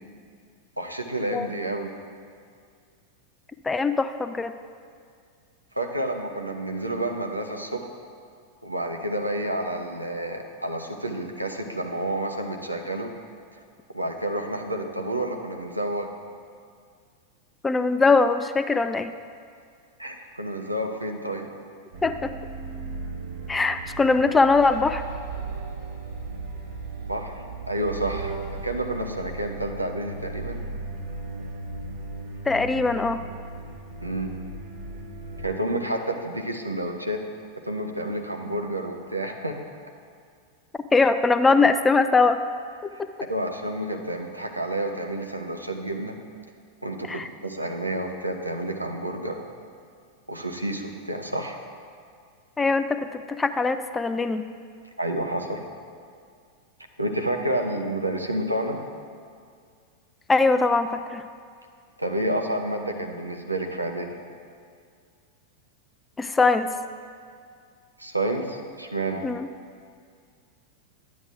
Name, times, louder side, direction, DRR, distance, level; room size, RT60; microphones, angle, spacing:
voice 1, 0.8-1.9 5.7-7.9 8.6-13.1 13.9-16.1 20.0-21.5 27.1-30.6 34.0-34.3 35.4-37.2 37.6-39.6 42.9-43.0 43.3-46.2 46.8-49.5 50.3-51.6 55.0-55.6 57.0-58.8 62.0-64.2 68.0-69.2, right 1 dB, 85° right, 2 dB, 0.8 m, -29 dB
voice 2, 3.6-4.5 17.6-19.1 22.0-22.3 23.5-25.0 32.5-33.2 40.9-42.4 47.1-47.3 52.6-54.5 60.3-61.2 66.2-66.7 69.2-69.5, left 3 dB, 10° left, 10 dB, 0.3 m, -21 dB
sound 1, 21.9-35.5, right 3 dB, 50° right, 1.2 m, -36 dB
12.5 x 9.4 x 2.4 m, 2.2 s
figure-of-eight pair, 90°, 0 cm